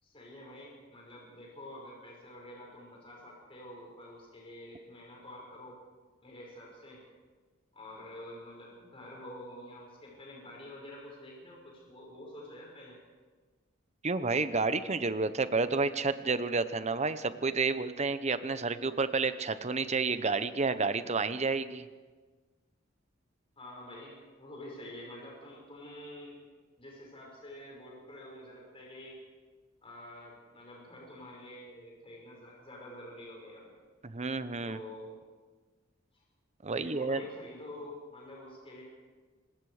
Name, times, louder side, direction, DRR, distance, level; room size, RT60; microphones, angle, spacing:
voice 1, 0.0-5.8 6.2-7.0 7.7-13.0 23.6-26.3 26.8-29.2 29.8-33.7 34.6-35.1 36.7-38.8, left 1 dB, 30° left, -3 dB, 5.8 m, -48 dB
voice 2, 14.0-21.8 34.0-34.8 36.6-37.2, right 4 dB, 35° right, 12 dB, 0.9 m, -30 dB
25.5 x 20.5 x 5.0 m, 1.4 s
head